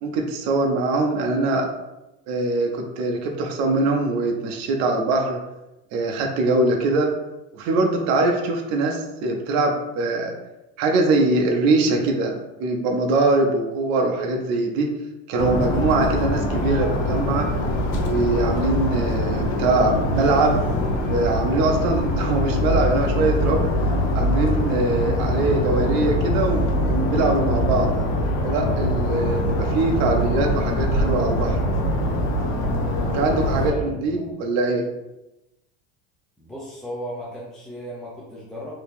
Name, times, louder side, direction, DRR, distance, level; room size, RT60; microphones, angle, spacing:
voice 1, 0.0-1.7 2.3-5.4 5.9-7.1 7.5-10.3 10.8-12.3 12.6-14.9 15.3-17.5 18.0-20.6 21.0-23.7 24.1-27.9 28.4-31.6 33.1-34.9, right 2 dB, 50° right, 2 dB, 0.6 m, -22 dB
sound 1, 15.4-33.7, left 1 dB, 60° left, 0.7 m, -23 dB
voice 2, 33.4-34.4 36.4-38.7, left 1 dB, ahead, -6 dB, 0.4 m, -36 dB
2.9 x 2.8 x 3.5 m, 0.95 s
supercardioid pair, 145°, 33 cm